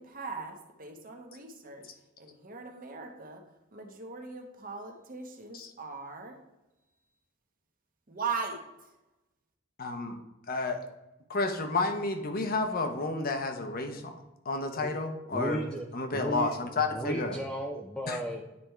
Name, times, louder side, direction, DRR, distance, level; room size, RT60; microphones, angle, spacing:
voice 1, 0.0-6.4 8.1-8.9, right 4 dB, 45° right, 3 dB, 1.1 m, -40 dB
voice 2, 9.8-10.2 10.5-10.8 11.3-14.1 14.4-15.6 15.9-17.4 18.1-18.2, left 3 dB, 50° left, 6 dB, 0.8 m, -31 dB
voice 3, 15.3-15.8 16.1-16.5 16.9-18.5, equal, 5° left, 0 dB, 0.5 m, -34 dB
9.6 x 3.4 x 4.4 m, 0.96 s
head